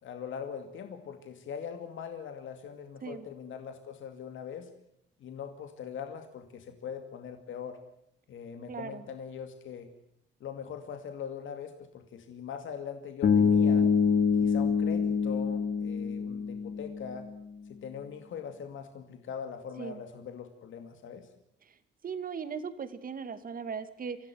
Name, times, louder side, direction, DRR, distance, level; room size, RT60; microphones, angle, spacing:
voice 1, 0.0-4.7 5.2-7.8 8.3-9.9 10.4-13.9 14.4-17.3 17.7-21.3, left 7 dB, 75° left, 6 dB, 2.4 m, -41 dB
voice 2, 8.7-9.0 19.8-20.0 22.0-24.2, right 6 dB, 45° right, 11 dB, 2.3 m, -38 dB
Bass guitar, 13.2-17.3, left 6 dB, 60° left, 3.1 m, -26 dB
26.5 x 16.5 x 9.4 m, 0.75 s
cardioid pair, 150°, 20 cm